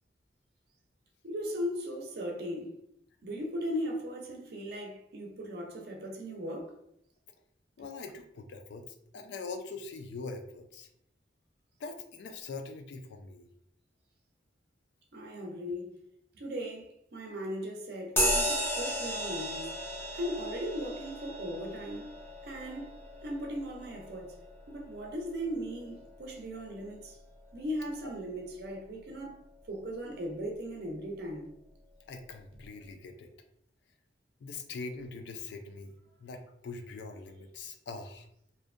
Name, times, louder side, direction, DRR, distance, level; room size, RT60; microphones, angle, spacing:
voice 1, 1.2-2.8 3.2-6.8 15.1-15.9 16.3-19.7 20.1-24.4 24.7-27.2 27.5-29.4 29.7-31.5, equal, 55° right, 0.5 m, -38 dB
voice 2, 7.8-8.9 9.1-10.9 11.8-13.5 28.0-28.1 32.1-33.3 34.4-35.9 36.2-38.3, left 3 dB, 65° left, 0.3 m, -42 dB
sound 1, 18.2-26.1, equal, 15° left, 0.5 m, -35 dB
2.6 x 2.1 x 2.4 m
head